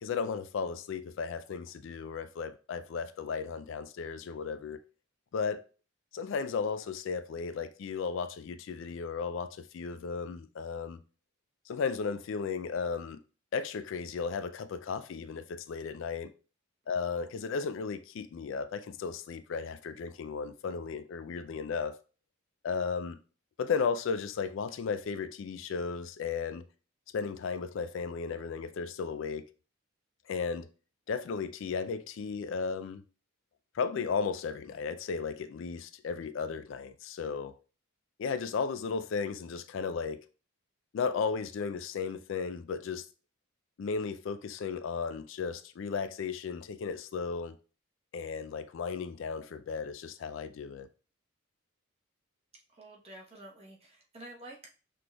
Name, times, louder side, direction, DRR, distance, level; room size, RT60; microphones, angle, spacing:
voice 1, 0.0-4.8 5.3-5.6 6.1-11.0 11.7-13.2 13.5-16.3 16.9-22.0 22.6-23.2 23.6-26.6 27.1-29.5 30.3-30.7 31.1-33.0 33.7-37.5 38.2-40.2 40.9-43.0 43.8-47.6 48.1-50.9, left 5 dB, 65° left, 0.3 m, -35 dB
voice 2, 52.7-54.7, right 1 dB, 30° right, 1.0 m, -49 dB
5.9 x 3.3 x 2.3 m
head